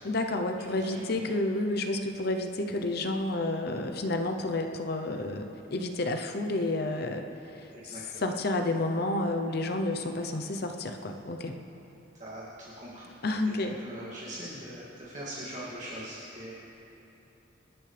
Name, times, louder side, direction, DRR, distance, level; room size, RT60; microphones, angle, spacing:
voice 1, 0.0-7.2 7.5-11.6 13.2-13.8, left 2 dB, 55° left, 5 dB, 0.8 m, -30 dB
voice 2, 0.7-1.3 7.7-8.2 12.2-13.1 13.5-16.5, right 1 dB, 40° right, -9 dB, 2.5 m, -42 dB
25.5 x 12.0 x 3.4 m, 3.0 s
head